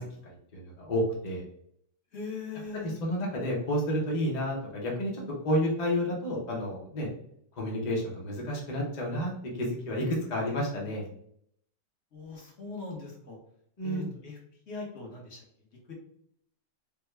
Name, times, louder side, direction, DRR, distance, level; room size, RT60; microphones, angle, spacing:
voice 1, 0.0-1.4 2.7-7.1 7.6-11.0 13.8-14.1, equal, 60° left, -2 dB, 0.4 m, -31 dB
voice 2, 2.1-3.0 12.1-13.4 13.8-14.4 14.7-15.4 15.9-16.0, left 4 dB, 45° left, -2 dB, 1.1 m, -40 dB
3.4 x 2.1 x 3.1 m, 0.69 s
omnidirectional pair, 1.9 m